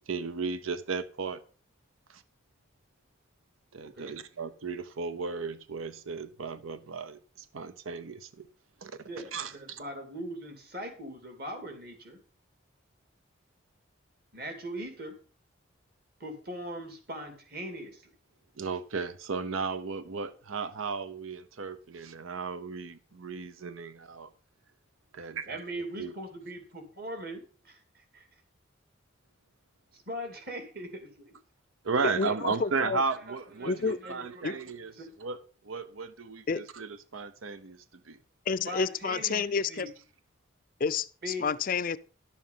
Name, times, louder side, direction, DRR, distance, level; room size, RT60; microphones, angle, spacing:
voice 1, 0.1-1.4 2.1-2.2 3.7-8.5 8.8-9.0 9.3-9.8 18.6-24.3 25.1-25.6 26.0-26.1 31.9-34.9 35.2-35.4 35.6-38.2, right 4 dB, 90° right, 0.7 m, -35 dB
voice 2, 9.0-12.2 14.3-15.2 16.2-18.1 25.5-28.3 29.9-30.9 32.0-32.3 33.3-35.1 38.7-39.9 41.2-41.5, equal, 45° right, 2.8 m, -41 dB
voice 3, 32.0-33.0 33.6-34.0 34.4-34.6 36.5-36.7 38.5-39.9 40.8-42.0, left 5 dB, 45° left, 0.4 m, -30 dB
11.5 x 7.2 x 5.6 m
head